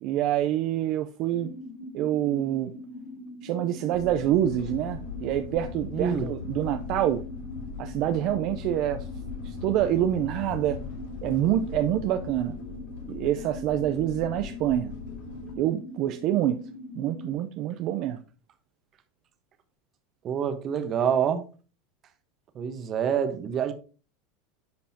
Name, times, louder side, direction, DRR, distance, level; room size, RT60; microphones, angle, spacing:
voice 1, 0.0-1.5 1.9-2.7 3.4-7.2 7.8-9.1 9.4-10.8 11.2-12.6 13.1-14.9 15.6-16.6 17.0-18.2, right 12 dB, 55° right, 0.6 m, -26 dB
sound 1, 1.3-17.3, left 2 dB, 55° left, 3.5 m, -42 dB
sound 2, 3.9-15.5, left 6 dB, 75° left, 2.4 m, -40 dB
voice 2, 5.9-6.3 20.2-21.4 22.5-23.7, right 8 dB, 40° right, 1.2 m, -26 dB
10.5 x 5.3 x 2.9 m
supercardioid pair, 125°, 0 cm